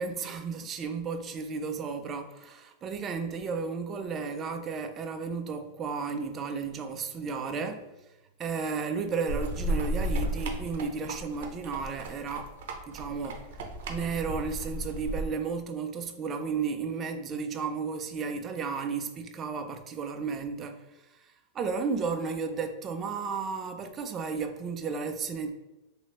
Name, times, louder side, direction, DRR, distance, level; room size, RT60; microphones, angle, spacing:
voice 1, 0.0-7.9 8.4-12.5 12.9-13.5 13.9-20.8 21.1-25.5, right 5 dB, 20° right, 0.3 m, -33 dB
sound 1, 9.3-15.3, right 1 dB, 65° right, 0.6 m, -34 dB
3.0 x 3.0 x 2.9 m
supercardioid pair, 155°, 0 cm